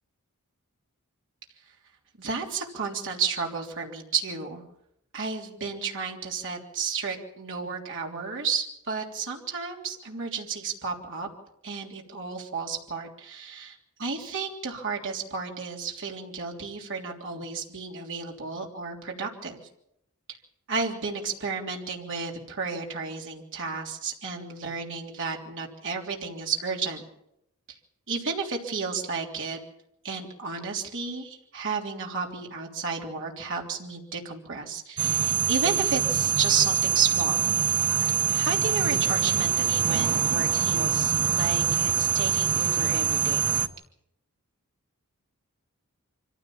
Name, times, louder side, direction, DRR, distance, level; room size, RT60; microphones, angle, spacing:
voice 1, 2.2-4.6 5.1-11.3 11.6-19.6 20.7-27.0 28.1-29.6 30.0-37.5 38.3-43.5, right 5 dB, 60° right, 0 dB, 3.3 m, -32 dB
sound 1, 35.0-43.7, right 9 dB, 85° right, 0.9 m, -24 dB
25.0 x 15.0 x 7.1 m, 0.77 s
head